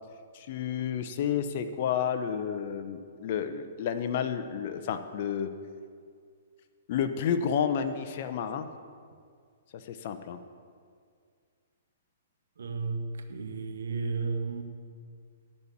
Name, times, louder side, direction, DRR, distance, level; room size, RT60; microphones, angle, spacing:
voice 1, 0.3-5.5 6.9-8.7 9.7-10.4, left 8 dB, 50° left, 9 dB, 0.8 m, -31 dB
voice 2, 12.6-14.6, right 4 dB, 80° right, 6 dB, 1.0 m, -33 dB
11.5 x 4.3 x 8.2 m, 2.1 s
hypercardioid pair, 135°, 0 cm